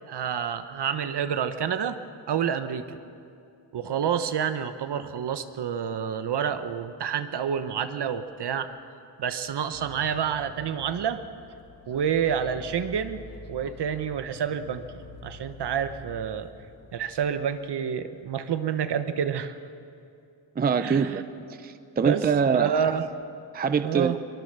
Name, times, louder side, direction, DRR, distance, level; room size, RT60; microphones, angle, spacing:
voice 1, 0.1-2.0 2.3-3.0 3.7-8.7 9.2-11.2 11.9-13.2 13.5-14.8 15.2-16.5 16.9-19.5 20.8-21.2 22.0-22.2 22.5-23.1 23.8-24.2, right 8 dB, 65° right, 10 dB, 1.1 m, -28 dB
sound 1, 9.7-17.3, left 4 dB, 35° left, 1.2 m, -47 dB
voice 2, 20.6-22.8 23.5-24.1, right 6 dB, 20° right, 11 dB, 0.5 m, -24 dB
23.5 x 23.0 x 6.8 m, 2.6 s
wide cardioid pair, 180°, 44 cm